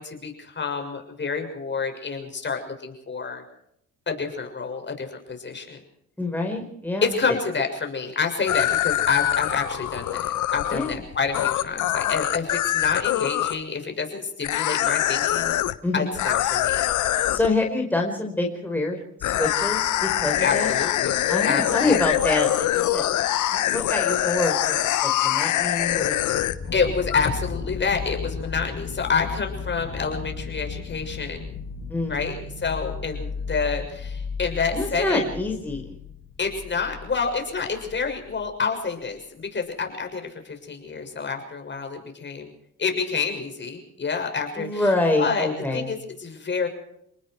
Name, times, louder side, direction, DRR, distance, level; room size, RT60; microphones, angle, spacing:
voice 1, 0.0-3.4 4.1-5.8 7.0-15.6 15.9-16.9 20.4-22.0 26.7-31.5 32.1-35.2 36.4-42.5 42.8-44.9 45.2-45.5 45.7-46.7, left 5 dB, 35° left, 4 dB, 6.6 m, -28 dB
voice 2, 6.2-7.1 10.7-11.0 15.8-16.1 17.3-20.7 21.3-23.0 23.5-24.8 25.0-26.3 31.9-32.3 34.7-36.0 44.6-45.9, left 2 dB, 5° left, 1 dB, 4.7 m, -26 dB
sound 1, 8.5-13.6 14.4-15.7 16.1-17.5 19.2-26.8 27.1-27.3, left 13 dB, 80° left, 1.1 m, -24 dB
sound 2, 26.1-38.5 39.0-39.1, left 5 dB, 55° left, 7.6 m, -35 dB
29.5 x 19.5 x 4.7 m, 0.74 s
cardioid pair, 90°, 30 cm